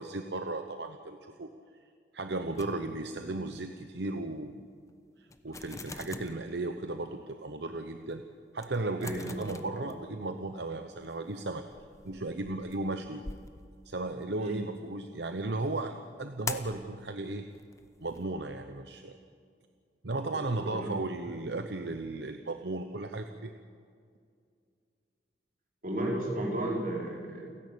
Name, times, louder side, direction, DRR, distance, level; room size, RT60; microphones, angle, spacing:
voice 1, 0.0-1.5 2.1-4.6 5.2-8.2 8.5-11.6 12.0-13.2 13.8-17.5 18.0-19.2 20.0-23.5, right 2 dB, 75° right, 7 dB, 0.9 m, -35 dB
sound 1, 2.5-3.3 3.6-3.8 4.3-4.4 4.9-5.0 5.3-6.5 7.1-7.2 7.7-7.8 8.0-8.2 8.6-10.4 10.8-14.4 16.5-16.8 17.5-18.2, left 3 dB, 20° left, 1.0 m, -44 dB
voice 2, 9.0-9.4 9.7-9.8 14.4-14.6 20.3-20.9 25.8-27.6, right 1 dB, 50° right, -2 dB, 5.0 m, -34 dB
29.0 x 11.0 x 8.5 m, 2.2 s
head